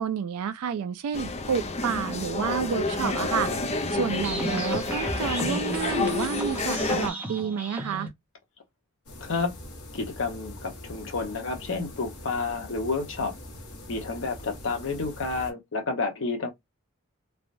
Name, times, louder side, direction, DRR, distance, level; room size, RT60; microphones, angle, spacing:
voice 1, 0.0-8.1, right 7 dB, 80° right, 0.3 m, -30 dB
sound 1, 1.1-7.1, left 3 dB, 30° left, 0.4 m, -29 dB
sound 2, 4.1-8.1, left 1 dB, 10° right, 0.6 m, -33 dB
sound 3, 9.1-15.5, left 1 dB, 90° left, 1.1 m, -43 dB
voice 2, 9.2-9.5 9.9-13.3 13.9-16.5, left 4 dB, 60° left, 0.8 m, -30 dB
3.3 x 2.2 x 2.5 m
head